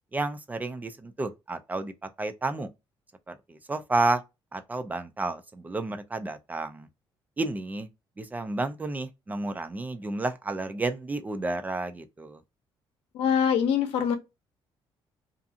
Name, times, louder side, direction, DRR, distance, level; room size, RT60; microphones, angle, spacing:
voice 1, 0.1-1.9 2.2-2.7 3.3-4.2 4.5-6.9 7.4-7.9 8.2-12.4, right 2 dB, 15° right, 0.3 m, -31 dB
voice 2, 13.1-14.2, left 8 dB, 85° left, 0.6 m, -24 dB
2.6 x 2.5 x 2.4 m
cardioid pair, 135°, 9 cm